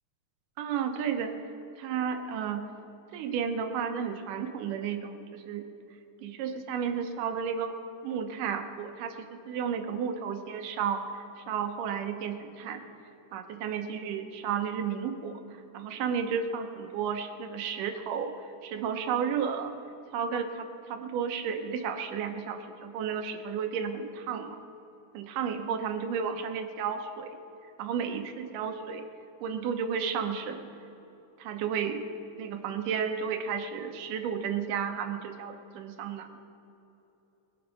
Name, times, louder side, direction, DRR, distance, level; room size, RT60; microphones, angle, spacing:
voice 1, 0.6-1.4 1.8-2.6 3.1-5.6 6.2-7.7 8.0-9.1 9.5-12.8 13.3-15.4 15.7-18.3 18.6-19.7 20.1-24.6 25.1-27.3 27.8-29.0 29.4-30.7 31.4-32.1 32.4-36.3, right 7 dB, 90° right, 6 dB, 2.5 m, -32 dB
20.5 x 7.1 x 5.2 m, 3.0 s
omnidirectional pair, 3.6 m